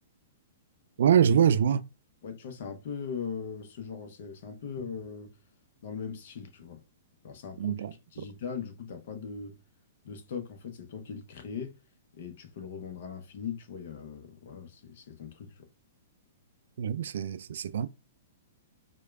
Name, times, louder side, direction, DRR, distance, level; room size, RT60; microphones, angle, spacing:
voice 1, 1.0-1.8 7.6-8.3 16.8-17.9, right 8 dB, 65° right, 0.3 m, -24 dB
voice 2, 2.2-5.3 5.8-6.8 7.2-9.6 10.0-11.7 12.1-15.7, left 6 dB, 55° left, 0.8 m, -40 dB
4.7 x 2.3 x 2.3 m
figure-of-eight pair, 110°, 0 cm